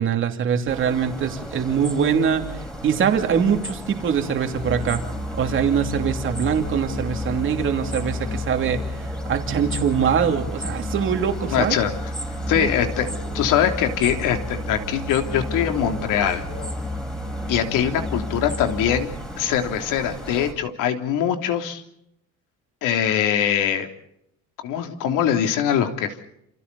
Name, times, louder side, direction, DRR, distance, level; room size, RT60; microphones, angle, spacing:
voice 1, 0.0-5.0 5.3-11.8 12.4-12.7, right 7 dB, 40° right, 5 dB, 2.8 m, -23 dB
sound 1, 0.7-20.5, equal, ahead, 3.6 m, -36 dB
Musical instrument, 4.5-19.3, left 1 dB, 35° left, 5.1 m, -32 dB
voice 2, 11.5-11.9 12.5-16.4 17.5-19.1 19.4-21.8 22.8-23.9 24.6-26.1, left 9 dB, 75° left, 5 dB, 3.2 m, -22 dB
28.5 x 28.5 x 4.1 m, 0.76 s
cardioid pair, 175°, 32 cm